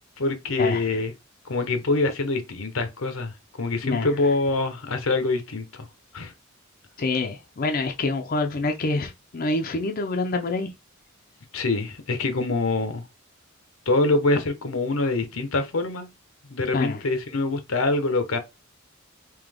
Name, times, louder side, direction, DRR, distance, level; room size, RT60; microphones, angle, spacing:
voice 1, 0.2-1.1 1.4-5.7 6.1-6.3 11.5-13.0 13.9-16.1 16.5-18.4, left 3 dB, 90° left, 0.9 m, -25 dB
voice 2, 7.0-10.7 16.7-17.0, left 3 dB, 45° left, 0.5 m, -26 dB
3.7 x 2.8 x 3.4 m
head